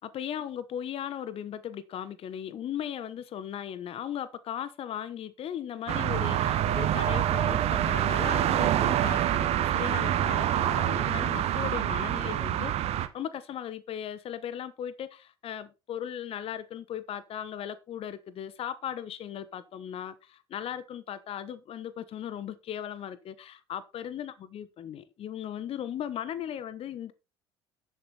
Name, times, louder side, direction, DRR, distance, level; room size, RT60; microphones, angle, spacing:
voice 1, 0.0-27.1, left 9 dB, 45° left, 1.0 m, -37 dB
sound 1, 5.9-13.1, right 11 dB, 50° right, 1.1 m, -26 dB
10.0 x 7.4 x 4.2 m
figure-of-eight pair, 55°, 13 cm